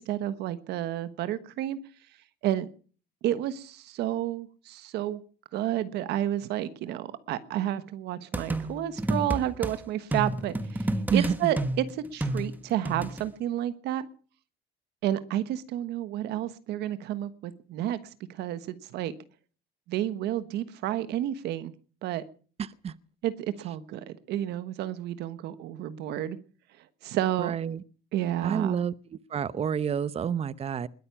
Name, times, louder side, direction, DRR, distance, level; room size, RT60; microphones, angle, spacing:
voice 1, 0.0-1.8 2.4-2.7 3.2-5.2 5.5-14.1 15.0-19.1 19.9-21.7 22.0-22.2 23.2-26.4 27.0-27.5 28.1-28.9, right 12 dB, 80° right, 1.3 m, -31 dB
sound 1, 8.3-9.7 10.1-13.2, right 1 dB, 10° right, 1.4 m, -30 dB
voice 2, 11.1-11.5 22.8-22.9 27.4-27.8 28.4-28.9 29.3-30.9, right 7 dB, 35° right, 0.8 m, -28 dB
21.0 x 9.5 x 7.1 m
cardioid pair, 110°, 17 cm